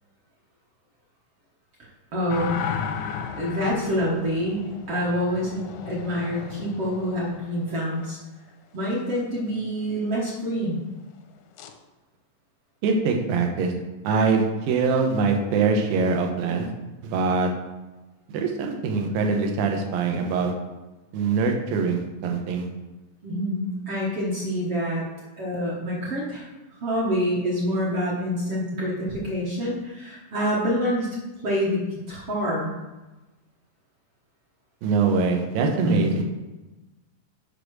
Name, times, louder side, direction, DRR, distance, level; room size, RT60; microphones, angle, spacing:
voice 1, 2.1-2.6 3.4-5.6 5.9-8.2 8.7-10.8 23.2-25.1 25.4-26.4 26.8-31.1 31.4-32.7 35.8-36.1, equal, 55° right, -5 dB, 1.8 m, -26 dB
sound 1, 2.3-8.1 11.6-11.7, left 7 dB, 80° left, 1.8 m, -35 dB
voice 2, 12.8-13.7 14.0-16.7 17.0-17.5 18.3-20.5 21.1-22.7 34.8-36.2, right 4 dB, 85° right, 2 dB, 2.7 m, -23 dB
6.7 x 5.1 x 6.2 m, 1.1 s
omnidirectional pair, 4.0 m